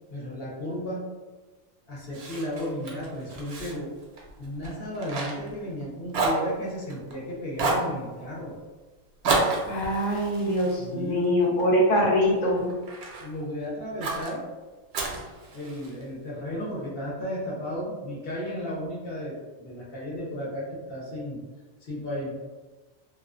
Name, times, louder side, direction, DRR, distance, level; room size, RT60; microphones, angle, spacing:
voice 1, 0.1-1.1 1.9-3.9 4.4-8.5 10.8-11.2 13.2-14.4 15.5-21.4 21.9-22.3, equal, 55° left, -6 dB, 0.9 m, -34 dB
Fire, 2.1-5.8 6.1-7.1 7.5-7.9 9.2-11.7 12.2-13.3 14.0-14.3 14.9-16.0, right 3 dB, 65° right, 0.8 m, -30 dB
voice 2, 9.7-12.7, equal, 85° left, -3 dB, 1.1 m, -23 dB
2.4 x 2.3 x 2.4 m, 1.2 s
omnidirectional pair, 1.2 m